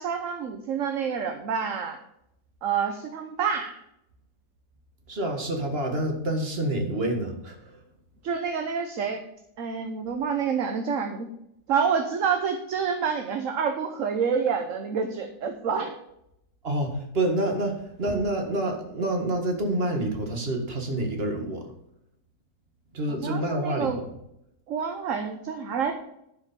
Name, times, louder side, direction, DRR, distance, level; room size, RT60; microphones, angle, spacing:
voice 1, 0.0-2.0 2.6-3.8 8.2-9.2 9.6-11.3 11.7-15.9 23.1-24.0 24.7-25.9, right 6 dB, 60° right, 6 dB, 1.2 m, -28 dB
voice 2, 5.1-7.8 16.6-21.7 22.9-24.1, right 1 dB, 40° right, 3 dB, 2.0 m, -28 dB
11.5 x 5.1 x 6.8 m, 0.79 s
omnidirectional pair, 1.6 m